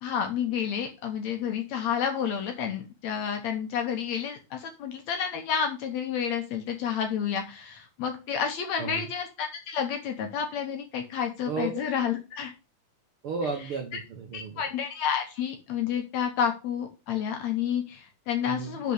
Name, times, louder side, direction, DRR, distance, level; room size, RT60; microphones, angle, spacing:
voice 1, 0.0-12.5 13.9-14.0 14.3-18.9, left 8 dB, 70° left, 4 dB, 1.8 m, -30 dB
voice 2, 13.2-14.6 18.4-18.8, right 5 dB, 75° right, 4 dB, 1.2 m, -33 dB
6.5 x 5.2 x 6.6 m, 0.30 s
omnidirectional pair, 4.0 m